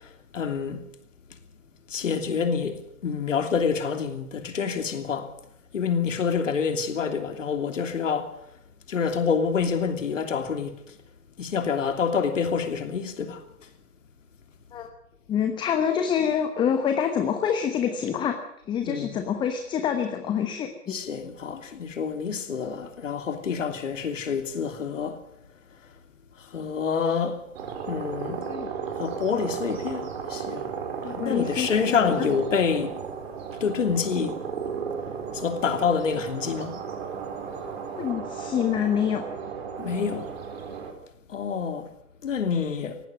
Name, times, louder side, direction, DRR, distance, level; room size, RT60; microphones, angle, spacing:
voice 1, 0.3-0.8 1.9-5.3 5.7-8.3 8.9-10.8 11.4-13.4 18.8-19.2 20.9-25.2 26.5-27.4 27.9-28.4 29.0-30.6 31.1-32.9 33.6-34.4 35.3-36.7 39.8-40.3 41.3-41.9 42.2-43.0, left 6 dB, 55° left, 3.1 m, -27 dB
voice 2, 15.3-18.3 18.7-20.9 28.4-28.7 31.0-32.3 37.9-39.2, left 8 dB, 10° left, 1.1 m, -26 dB
sound 1, 27.5-40.9, right 6 dB, 45° right, 4.3 m, -35 dB
19.0 x 15.5 x 9.5 m
figure-of-eight pair, 125°, 44 cm